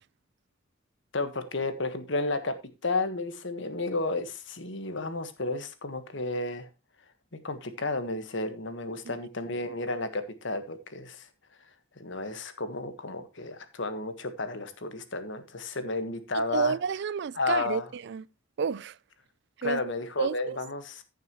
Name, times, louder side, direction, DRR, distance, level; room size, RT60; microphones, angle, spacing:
voice 1, 1.1-2.5 2.8-6.7 7.4-11.3 12.0-16.7 17.3-17.9 19.6-21.0, left 3 dB, 65° left, 1.4 m, -32 dB
voice 2, 16.3-18.2 18.6-18.9 19.6-19.8 20.2-20.6, right 6 dB, 60° right, 0.4 m, -30 dB
15.0 x 6.7 x 3.0 m
head